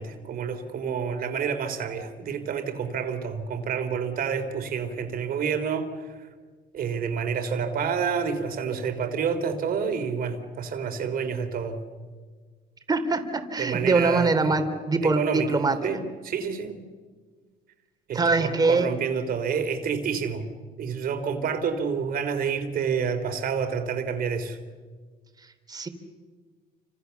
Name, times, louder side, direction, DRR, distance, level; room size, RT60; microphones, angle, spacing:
voice 1, 0.0-6.3 6.7-11.8 13.6-14.6 15.0-15.5 15.8-16.8 18.1-20.5 20.8-24.6, right 6 dB, 60° right, 8 dB, 3.6 m, -29 dB
voice 2, 12.9-15.8 18.1-18.9 25.7-25.9, right 3 dB, 25° right, 7 dB, 3.4 m, -23 dB
29.5 x 26.5 x 7.2 m, 1.5 s
cardioid pair, 110°, 17 cm